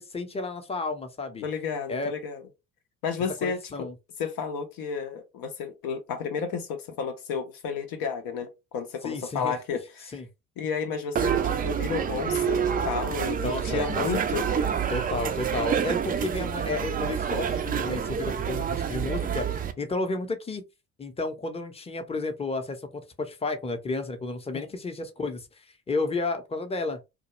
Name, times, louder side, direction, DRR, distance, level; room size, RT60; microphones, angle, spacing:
voice 1, 0.0-1.4 1.9-2.1 3.4-3.9 9.0-9.5 10.1-10.3 13.4-14.2 14.9-20.6 21.0-22.8 23.2-25.5 25.9-27.0, left 3 dB, 15° left, 0.6 m, -32 dB
voice 2, 1.4-2.4 3.0-3.7 4.2-10.2 10.6-14.5, left 6 dB, 60° left, 0.6 m, -32 dB
sound 1, 11.2-19.7, right 8 dB, 25° right, 0.3 m, -28 dB
2.3 x 2.0 x 3.0 m
hypercardioid pair, 60°, 39 cm